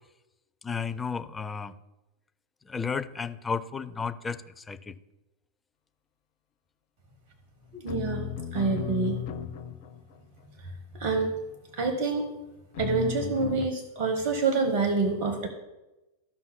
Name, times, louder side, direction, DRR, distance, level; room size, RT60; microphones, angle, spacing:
voice 1, 0.6-1.7 2.7-4.9, left 5 dB, 15° left, 11 dB, 0.5 m, -33 dB
voice 2, 7.7-9.2 11.0-11.3 11.7-12.2 12.8-15.5, right 4 dB, 45° right, 4 dB, 1.1 m, -27 dB
sound 1, 7.9-10.2 12.7-13.7, left 8 dB, 50° left, 0.7 m, -35 dB
14.5 x 5.4 x 2.2 m, 1.0 s
figure-of-eight pair, 90°, 0 cm